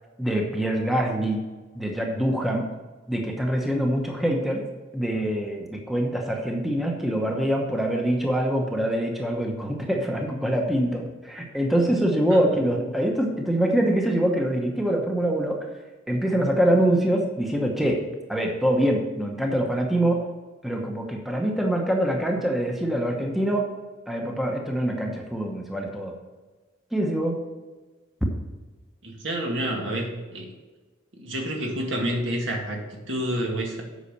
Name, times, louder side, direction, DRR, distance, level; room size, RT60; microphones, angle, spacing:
voice 1, 0.2-1.4 1.7-2.7 3.1-4.6 4.9-15.7 16.1-18.0 18.3-20.2 20.6-23.7 24.1-26.1 26.9-27.4, right 1 dB, ahead, 0 dB, 0.9 m, -24 dB
voice 2, 29.0-30.5 31.1-33.8, right 1 dB, 70° right, 0 dB, 2.0 m, -29 dB
8.3 x 5.7 x 6.6 m, 1.3 s
head